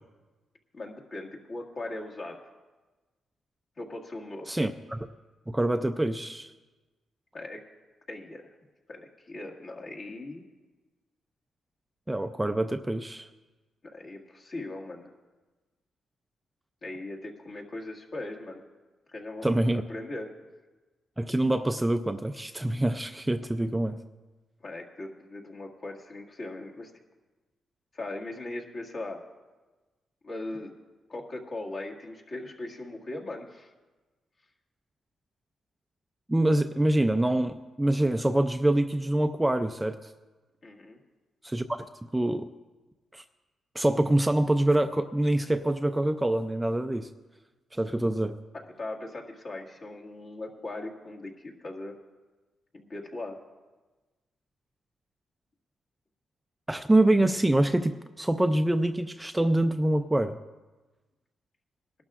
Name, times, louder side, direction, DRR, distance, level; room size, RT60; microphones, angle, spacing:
voice 1, 0.7-2.4 3.8-4.6 7.3-7.6 8.1-8.4 8.9-10.4 13.9-15.1 16.8-18.6 19.1-19.6 19.9-20.3 24.6-26.9 27.9-29.2 30.2-30.7 31.1-33.7 40.6-41.0 48.5-52.0 52.7-53.4, left 2 dB, 45° left, -2 dB, 1.9 m, -39 dB
voice 2, 4.5-5.1 5.5-6.5 12.1-13.3 19.4-19.8 21.2-24.0 36.3-40.0 41.4-41.9 42.1-42.5 43.1-43.2 43.7-47.1 47.7-48.4 56.7-60.4, right 1 dB, 10° right, 8 dB, 0.4 m, -25 dB
22.5 x 12.0 x 2.5 m, 1.2 s
cardioid pair, 110°, 0 cm